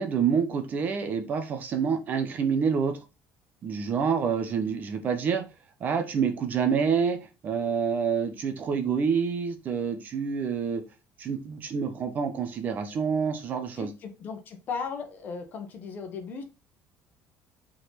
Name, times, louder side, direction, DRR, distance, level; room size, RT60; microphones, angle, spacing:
voice 1, 0.0-3.0 3.6-5.4 5.8-10.8 11.2-13.9, right 6 dB, 35° right, 1.1 m, -27 dB
voice 2, 13.8-16.4, left 5 dB, 40° left, 1.5 m, -36 dB
5.6 x 4.3 x 5.7 m
cardioid pair, 175°, 5 cm